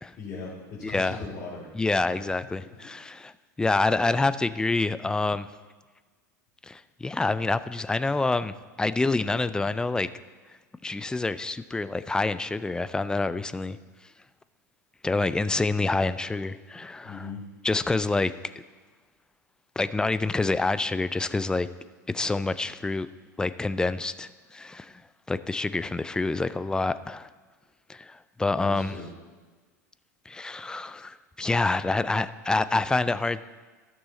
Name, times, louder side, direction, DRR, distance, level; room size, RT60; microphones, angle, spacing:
voice 1, 0.2-1.7 2.0-2.2 2.6-2.9 5.0-5.1 17.0-17.5 28.5-29.1, left 4 dB, 40° left, -7 dB, 2.6 m, -39 dB
voice 2, 0.8-1.2 1.7-3.3 3.6-5.5 6.6-10.1 10.8-13.8 15.0-17.2 17.6-18.3 19.8-21.7 22.1-23.1 23.4-25.0 25.3-27.3 27.9-28.9 30.3-33.5, left 3 dB, 10° left, 14 dB, 0.4 m, -27 dB
13.5 x 6.2 x 4.1 m, 1.4 s
figure-of-eight pair, 85°, 10 cm